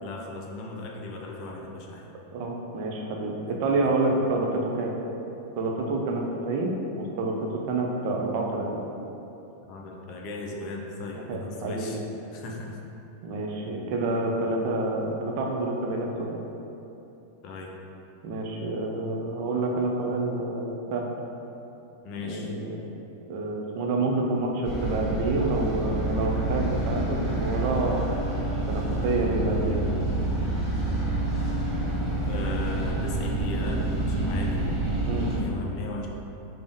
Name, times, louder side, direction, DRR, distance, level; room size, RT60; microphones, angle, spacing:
voice 1, 0.0-2.1 3.8-3.9 9.7-12.0 12.3-12.8 17.4-17.7 22.0-22.5 32.3-34.8 35.3-36.1, left 3 dB, 40° left, 0 dB, 0.5 m, -37 dB
voice 2, 2.3-4.9 5.6-8.8 11.1-11.9 13.2-16.4 18.2-21.1 22.2-22.8 23.3-28.1 28.7-29.8 35.1-35.3, right 2 dB, 45° right, 0 dB, 0.4 m, -28 dB
sound 1, 24.6-35.4, right 2 dB, 5° right, 1.4 m, -28 dB
5.0 x 2.0 x 3.5 m, 2.9 s
figure-of-eight pair, 90°, 0 cm